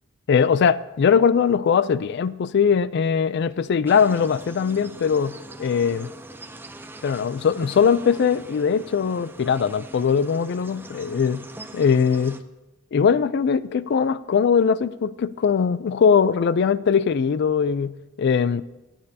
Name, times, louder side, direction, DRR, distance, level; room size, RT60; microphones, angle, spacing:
voice 1, 0.3-5.3 5.6-6.1 7.0-11.4 11.7-12.4 12.9-17.9 18.2-18.6, left 6 dB, 55° left, 0.3 m, -20 dB
sound 1, 3.9-12.4, right 1 dB, 10° right, 0.5 m, -42 dB
26.0 x 8.8 x 2.8 m
head